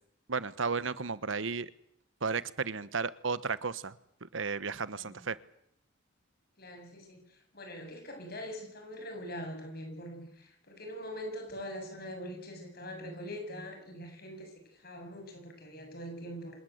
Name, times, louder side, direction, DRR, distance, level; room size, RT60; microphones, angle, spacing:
voice 1, 0.3-1.7 2.2-4.0 4.3-5.4, right 5 dB, 80° right, 16 dB, 1.1 m, -33 dB
voice 2, 6.6-16.6, equal, 50° left, 4 dB, 7.1 m, -43 dB
26.5 x 19.0 x 8.1 m, 0.73 s
head